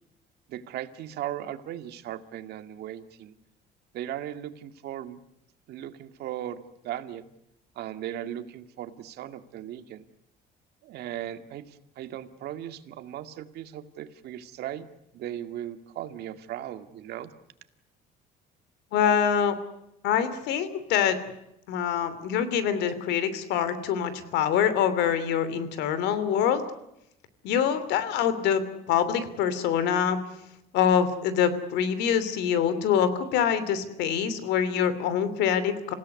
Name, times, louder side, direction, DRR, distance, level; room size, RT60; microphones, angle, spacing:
voice 1, 0.5-3.3 3.9-5.2 5.7-7.2 7.8-10.0 10.8-14.9 15.1-17.3, right 11 dB, 75° right, 9 dB, 2.1 m, -37 dB
voice 2, 18.9-19.5 20.0-21.2 21.7-26.6 27.4-30.2 30.7-35.9, left 8 dB, 90° left, 13 dB, 2.9 m, -25 dB
27.5 x 17.0 x 9.6 m, 0.83 s
cardioid pair, 110°, 17 cm